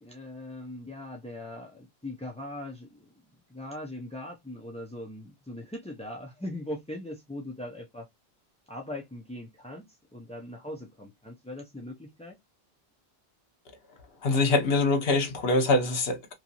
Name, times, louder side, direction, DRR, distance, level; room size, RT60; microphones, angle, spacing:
voice 1, 0.0-3.1 3.5-8.1 8.7-12.4, left 1 dB, 10° left, 0.4 m, -40 dB
voice 2, 14.2-16.3, left 2 dB, 75° left, 1.1 m, -24 dB
3.0 x 2.8 x 2.6 m
omnidirectional pair, 1.0 m